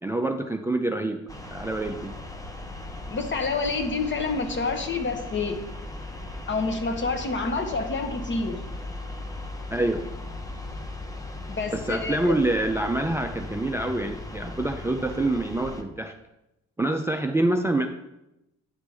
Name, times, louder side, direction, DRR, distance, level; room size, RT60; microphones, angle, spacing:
voice 1, 0.0-1.2 1.5-2.2 9.7-10.1 11.7-16.1 16.8-17.9, right 2 dB, 10° right, 5 dB, 0.4 m, -26 dB
sound 1, 1.3-15.8, left 2 dB, 10° left, 0.8 m, -38 dB
voice 2, 3.1-5.6 6.5-8.6 11.5-12.3, left 4 dB, 40° left, 6 dB, 1.0 m, -28 dB
9.0 x 5.1 x 3.4 m, 0.91 s
cardioid pair, 90°, 30 cm